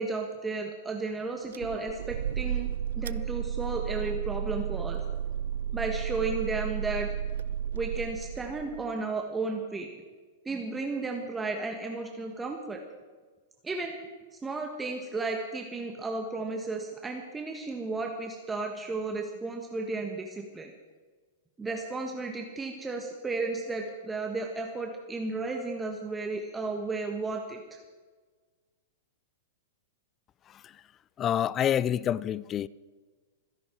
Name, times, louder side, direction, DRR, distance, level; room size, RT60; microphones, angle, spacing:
voice 1, 0.0-2.7 3.0-5.0 5.7-7.1 7.7-9.9 10.4-12.8 13.6-14.0 14.4-20.7 21.6-27.8, right 3 dB, 15° right, 1.6 m, -33 dB
sound 1, 1.5-8.9, right 9 dB, 75° right, 0.4 m, -33 dB
voice 2, 31.2-32.7, left 10 dB, 30° left, 0.5 m, -28 dB
25.0 x 11.0 x 4.6 m
hypercardioid pair, 120°, 0 cm